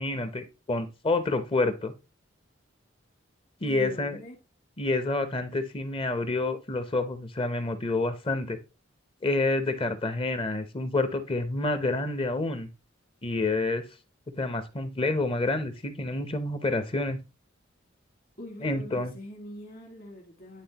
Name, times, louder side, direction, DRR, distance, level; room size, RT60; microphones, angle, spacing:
voice 1, 0.0-1.9 3.6-4.2 4.8-8.6 9.2-12.7 13.2-13.8 14.4-17.2 18.6-19.1, left 2 dB, 30° left, 0.7 m, -28 dB
voice 2, 3.6-4.4 18.4-20.6, left 1 dB, 45° left, 1.7 m, -42 dB
10.0 x 3.5 x 2.9 m
head